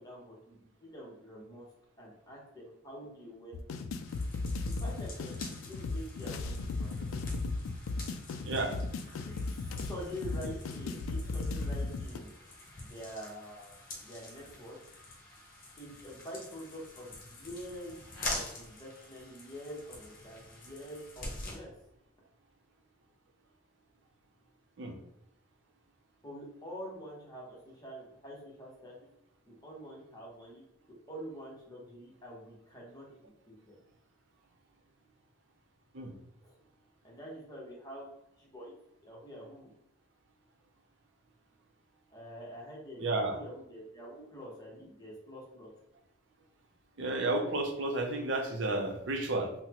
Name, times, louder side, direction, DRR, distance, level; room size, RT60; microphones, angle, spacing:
voice 1, 0.0-1.7 2.0-3.6 4.6-7.1 9.2-12.3 12.8-14.8 15.8-18.0 18.3-21.7 26.2-29.1 29.5-30.6 30.9-33.1 33.5-33.7 36.4-36.6 37.0-38.1 38.4-38.7 39.0-39.7 42.1-45.7, equal, 20° left, -5 dB, 0.9 m, -46 dB
sound 1, 3.5-12.2, left 3 dB, 80° left, 0.3 m, -36 dB
sound 2, 4.1-21.6, left 2 dB, 45° left, 0.9 m, -46 dB
voice 2, 8.4-8.7 24.8-25.0 35.9-36.1 43.0-43.4 47.0-49.5, right 2 dB, 60° right, 4 dB, 0.5 m, -32 dB
3.9 x 2.1 x 2.9 m, 0.80 s
head